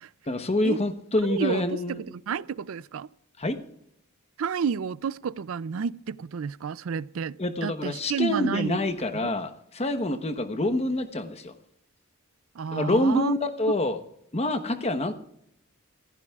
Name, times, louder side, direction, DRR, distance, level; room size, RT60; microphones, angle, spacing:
voice 1, 0.3-2.0 3.4-3.6 7.4-11.5 12.7-14.0 14.3-15.1, left 1 dB, 30° left, 1.0 m, -26 dB
voice 2, 1.2-3.1 4.4-7.4 7.6-8.8 9.1-9.3 12.5-13.3, right 6 dB, 70° right, 0.4 m, -30 dB
26.5 x 15.0 x 2.4 m
head